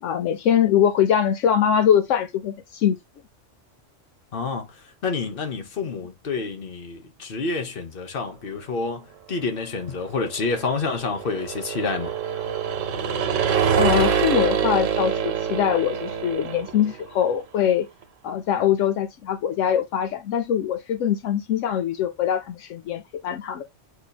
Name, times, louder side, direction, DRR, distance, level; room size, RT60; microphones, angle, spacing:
voice 1, 0.0-3.0 13.8-17.9 18.2-23.6, left 9 dB, 80° left, 0.9 m, -22 dB
voice 2, 4.3-4.7 5.0-12.1, left 4 dB, 50° left, 1.1 m, -28 dB
sound 1, 10.1-17.1, right 7 dB, 90° right, 1.2 m, -25 dB
8.3 x 2.8 x 2.2 m
omnidirectional pair, 1.3 m